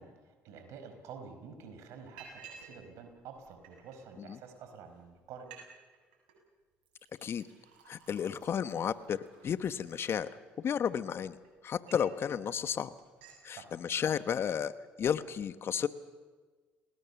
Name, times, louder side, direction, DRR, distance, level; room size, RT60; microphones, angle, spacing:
voice 1, 0.0-5.5 13.5-13.7, right 6 dB, 70° right, 7 dB, 4.9 m, -49 dB
Liquid, 1.0-1.1 1.4-1.7 2.2-2.8 3.1-4.0 4.6-4.7 5.0-5.1 5.4-5.7 5.9-6.4 6.8-10.6 11.2-12.2 12.6-12.7 13.0-13.4, right 6 dB, 85° right, 7.6 m, -55 dB
voice 2, 7.9-10.3 10.6-11.4 11.6-12.9 13.4-14.7 15.0-15.9, left 8 dB, 50° left, 13 dB, 1.2 m, -32 dB
29.5 x 19.0 x 7.1 m, 1.4 s
hypercardioid pair, 60°, 5 cm